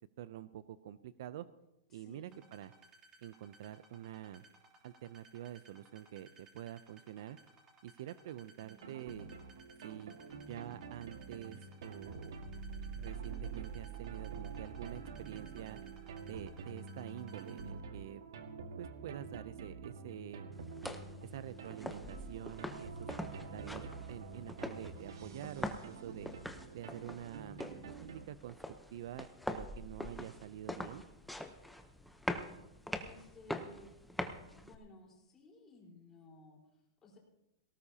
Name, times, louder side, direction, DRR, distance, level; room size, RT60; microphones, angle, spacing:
voice 1, 0.2-1.5 1.9-2.7 3.2-4.4 4.8-7.4 7.8-9.3 9.8-10.2 10.5-12.4 12.9-15.8 16.2-18.2 18.8-20.5 21.2-26.3 26.7-27.6 28.0-28.6 28.9-31.0, right 12 dB, 60° right, 15 dB, 0.5 m, -47 dB
voice 2, 1.9-2.4 33.0-33.9 34.6-37.2, left 3 dB, 20° left, -3 dB, 4.2 m, -58 dB
sound 1, 2.3-17.7, right 2 dB, 25° right, 3.3 m, -62 dB
sound 2, 8.6-28.3, right 5 dB, 85° right, 1.7 m, -47 dB
sound 3, 20.5-34.7, left 1 dB, ahead, 0.8 m, -44 dB
18.5 x 18.0 x 2.9 m, 0.92 s
supercardioid pair, 150°, 2 cm